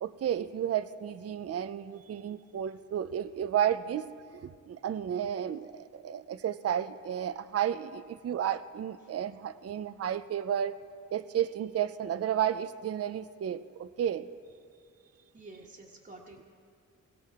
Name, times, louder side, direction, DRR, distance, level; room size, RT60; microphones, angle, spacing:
voice 1, 0.0-4.1 4.3-10.8 11.1-14.3, right 10 dB, 50° right, 13 dB, 0.5 m, -32 dB
voice 2, 15.3-16.4, right 2 dB, 30° right, -4 dB, 1.5 m, -49 dB
21.5 x 17.0 x 3.6 m, 2.3 s
wide cardioid pair, 95°, 32 cm